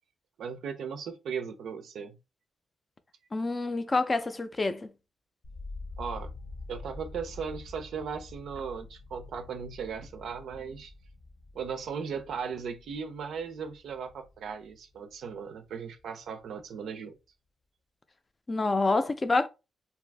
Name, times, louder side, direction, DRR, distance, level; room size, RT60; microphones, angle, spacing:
voice 1, 0.4-2.2 6.0-6.4 6.7-10.9 11.5-17.2, right 6 dB, 85° right, 0.4 m, -37 dB
voice 2, 3.3-4.9 18.5-19.5, left 3 dB, 30° left, 0.4 m, -27 dB
sound 1, 5.4-15.4 15.7-16.4, left 2 dB, 65° left, 0.9 m, -46 dB
2.7 x 2.4 x 3.3 m
cardioid pair, 95°, 0 cm